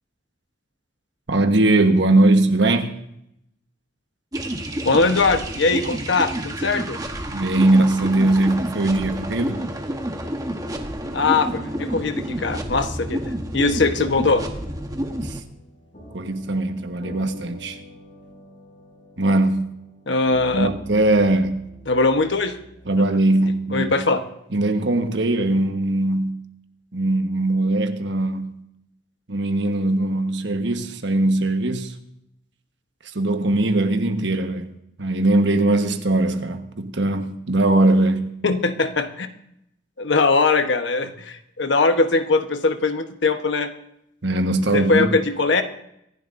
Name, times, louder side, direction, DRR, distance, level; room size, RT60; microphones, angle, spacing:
voice 1, 1.3-2.9 7.3-9.7 15.2-15.4 16.1-17.8 19.2-19.7 20.5-21.7 22.9-23.9 24.5-26.4 26.9-28.6 29.3-31.9 33.1-34.7 35.0-38.3 44.2-45.2, right 2 dB, 65° right, 1.3 m, -20 dB
sound 1, 4.3-15.4, right 1 dB, 20° right, 1.1 m, -29 dB
voice 2, 4.8-7.0 11.1-14.4 20.1-20.7 21.9-22.6 23.7-24.2 38.4-39.3 40.0-43.7 44.7-45.6, left 3 dB, 70° left, 1.1 m, -21 dB
sound 2, 14.5-22.8, left 1 dB, 40° left, 6.7 m, -45 dB
24.5 x 11.5 x 2.6 m
head